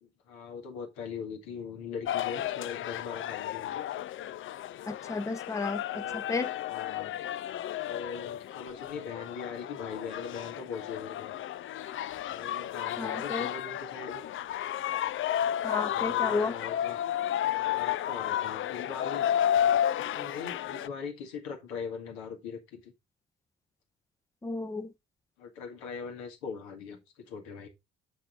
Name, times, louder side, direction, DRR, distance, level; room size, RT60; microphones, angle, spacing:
voice 1, 0.0-3.9 5.9-6.2 6.7-7.2 7.8-11.3 12.3-14.2 15.8-17.0 17.5-19.4 20.0-22.9 25.4-27.7, left 6 dB, 75° left, 1.8 m, -41 dB
sound 1, 2.1-20.9, left 11 dB, 40° left, 0.5 m, -32 dB
voice 2, 4.8-6.5 13.0-13.5 15.6-16.5 24.4-24.9, left 3 dB, 10° left, 0.7 m, -33 dB
7.2 x 5.4 x 3.8 m
figure-of-eight pair, 50°, 32 cm